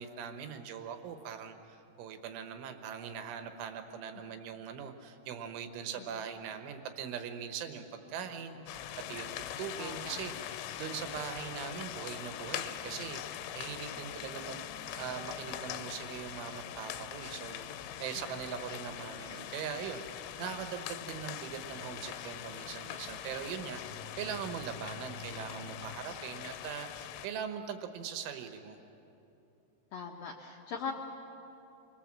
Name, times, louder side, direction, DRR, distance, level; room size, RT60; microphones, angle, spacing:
voice 1, 0.0-28.8, right 7 dB, 90° right, 7 dB, 3.7 m, -41 dB
sound 1, 8.0-26.0, left 4 dB, 50° left, 2.9 m, -54 dB
sound 2, 8.7-27.3, left 11 dB, 90° left, 3.3 m, -42 dB
voice 2, 9.8-10.2 18.2-18.4 29.9-30.9, left 5 dB, 70° left, -1 dB, 2.3 m, -41 dB
27.5 x 23.5 x 7.5 m, 2.9 s
omnidirectional pair, 5.4 m